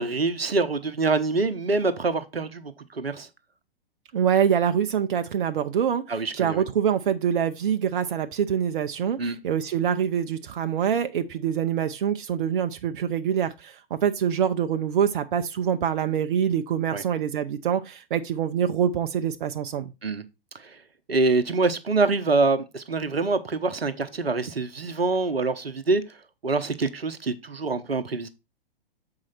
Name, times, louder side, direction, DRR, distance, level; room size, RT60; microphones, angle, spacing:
voice 1, 0.0-3.3 6.1-6.6 9.2-9.4 16.9-17.0 20.0-20.2 20.5-20.8 21.1-26.0 26.4-28.3, right 3 dB, 85° right, 1.0 m, -25 dB
voice 2, 4.1-6.0 6.3-19.9, right 8 dB, 60° right, 0.7 m, -25 dB
7.5 x 4.8 x 4.1 m
figure-of-eight pair, 110°, 29 cm